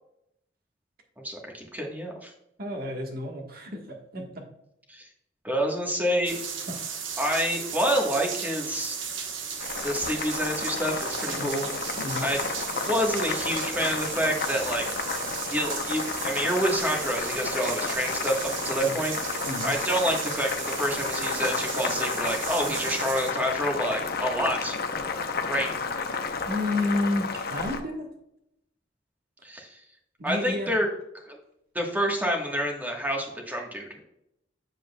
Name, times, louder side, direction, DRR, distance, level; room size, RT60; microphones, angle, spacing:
voice 1, 1.2-2.3 4.9-5.1 5.4-6.4 7.2-9.0 9.8-11.7 12.2-12.4 12.9-14.8 15.5-24.8 25.5-25.7 29.4-29.8 30.2-30.9 31.3-31.4 31.7-34.0, equal, 10° right, 0 dB, 1.3 m, -28 dB
voice 2, 2.6-4.4 6.7-6.8 11.3-11.6 12.0-12.3 18.8-18.9 19.4-19.7 26.5-28.1 30.2-30.7, left 2 dB, 55° right, 2 dB, 1.4 m, -31 dB
sound 1, 6.3-23.3, right 6 dB, 90° right, 1.1 m, -35 dB
Boiling, 9.6-27.8, left 4 dB, 55° left, 0.7 m, -32 dB
7.8 x 7.5 x 2.3 m, 0.80 s
head